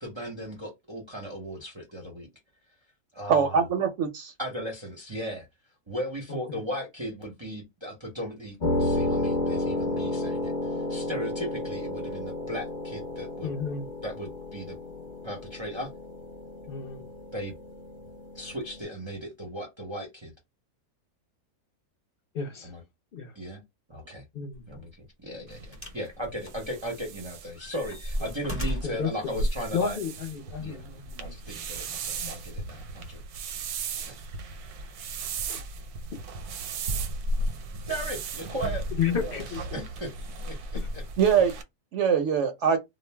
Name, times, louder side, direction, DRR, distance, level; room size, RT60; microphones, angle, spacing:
voice 1, 0.0-2.3 3.1-3.6 4.4-5.5 5.9-13.5 14.0-14.8 15.2-15.9 17.3-17.5 18.3-20.3 22.6-22.8 23.3-23.6 23.9-24.2 24.7-30.0 30.6-30.8 31.2-33.2 34.0-34.2 37.9-39.4 39.7-40.1 40.5-41.0, equal, 35° right, 0.4 m, -37 dB
voice 2, 3.3-4.3 41.2-41.5 41.9-42.8, right 7 dB, 65° right, 0.7 m, -23 dB
voice 3, 6.3-6.6 13.4-13.9 16.7-17.1 22.3-22.7 23.1-23.3 24.3-24.6 28.6-29.3 29.7-31.3 32.2-32.3 35.5-35.6 39.0-39.6 40.7-40.9, left 6 dB, 65° left, 0.5 m, -32 dB
sound 1, 8.6-18.8, left 2 dB, 40° left, 0.9 m, -32 dB
sound 2, 24.5-24.7 25.7-26.1 26.4-27.2 27.6-29.0 29.9-30.0, equal, 15° left, 0.5 m, -35 dB
sound 3, 25.5-41.6, right 2 dB, 85° right, 1.1 m, -35 dB
2.4 x 2.0 x 3.2 m
omnidirectional pair, 1.6 m